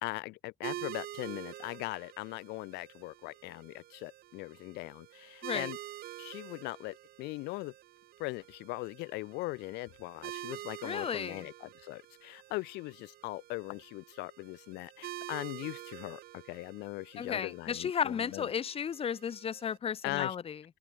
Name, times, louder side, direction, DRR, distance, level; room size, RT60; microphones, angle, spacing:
voice 1, 0.0-5.8 6.2-7.7 8.2-18.5 20.0-20.4, left 22 dB, 85° left, 0.5 m, -40 dB
sound 1, 0.6-19.8, right 14 dB, 65° right, 0.8 m, -47 dB
voice 2, 10.8-11.5 17.2-20.6, left 7 dB, 35° left, 0.8 m, -34 dB
open air
cardioid pair, 110°, 17 cm